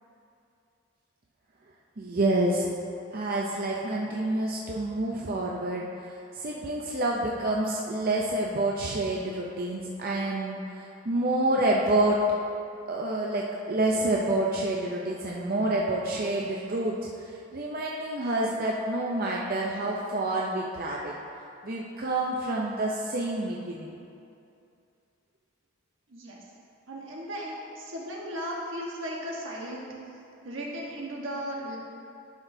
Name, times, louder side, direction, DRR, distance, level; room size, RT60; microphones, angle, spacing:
voice 1, 2.0-2.7 3.1-12.2 12.9-21.2 21.6-24.0, right 2 dB, 45° right, -3 dB, 0.5 m, -28 dB
voice 2, 26.1-26.4 26.9-29.9 30.4-31.8, equal, 75° right, -3 dB, 1.3 m, -36 dB
11.5 x 6.0 x 2.7 m, 2.6 s
head